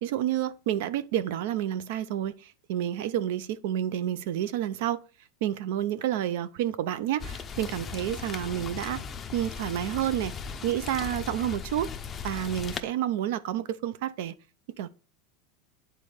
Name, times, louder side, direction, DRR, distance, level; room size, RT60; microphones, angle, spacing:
voice 1, 0.0-5.0 5.4-9.0 9.3-10.3 10.6-11.9 12.2-14.3 14.8-14.9, right 11 dB, 60° right, 0.6 m, -29 dB
Rain, 7.2-12.8, left 6 dB, 15° left, 0.5 m, -37 dB
9.0 x 4.2 x 4.9 m
supercardioid pair, 180°, 0 cm